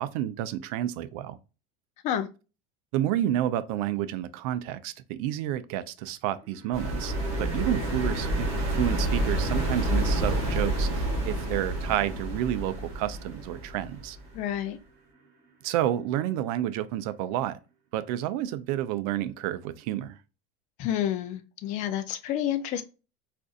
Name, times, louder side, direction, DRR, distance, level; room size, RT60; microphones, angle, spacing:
voice 1, 0.0-1.4 2.9-7.1 7.4-14.2 15.6-17.6 17.9-20.2, right 12 dB, 65° right, 0.5 m, -30 dB
sound 1, 6.3-16.5 16.8-16.9, right 5 dB, 50° right, 1.3 m, -45 dB
sound 2, 6.7-14.4, right 1 dB, 30° right, 1.8 m, -29 dB
voice 2, 14.3-14.8 20.8-22.8, left 10 dB, 40° left, 0.4 m, -29 dB
3.8 x 2.5 x 2.4 m
cardioid pair, 160°, 20 cm